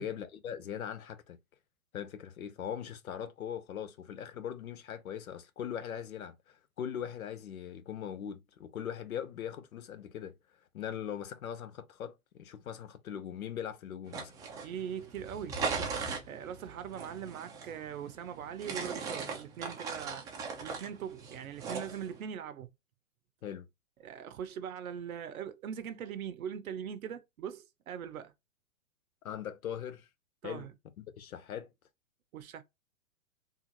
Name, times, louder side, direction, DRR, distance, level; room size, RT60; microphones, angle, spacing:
voice 1, 0.0-1.4 1.9-10.4 10.7-14.3 14.6-14.7 23.4-23.7 29.2-30.1 30.4-30.7 31.0-31.7, left 9 dB, 80° left, 0.8 m, -40 dB
sound 1, 14.1-22.2, right 5 dB, 10° right, 0.4 m, -39 dB
voice 2, 14.6-15.9 16.3-20.2 20.6-22.7 24.0-28.3 30.4-30.7 32.3-32.6, right 8 dB, 80° right, 0.7 m, -41 dB
3.7 x 2.4 x 2.9 m
hypercardioid pair, 120°, 42 cm